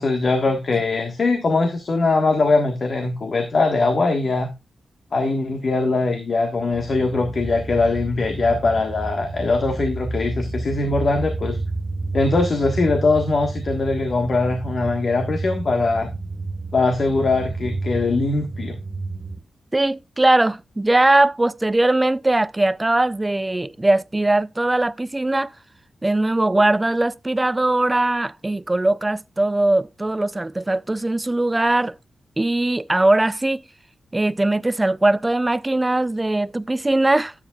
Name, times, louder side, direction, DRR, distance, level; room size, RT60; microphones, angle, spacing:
voice 1, 0.0-4.5 5.1-11.6 12.1-16.1 16.7-18.8, left 3 dB, 50° left, 1.5 m, -21 dB
sound 1, 6.7-19.4, right 3 dB, 40° right, 2.2 m, -30 dB
voice 2, 19.7-25.5 26.0-31.9 32.4-33.6 34.1-37.3, right 2 dB, 15° right, 0.4 m, -20 dB
12.5 x 9.0 x 2.4 m
cardioid pair, 95°, 0 cm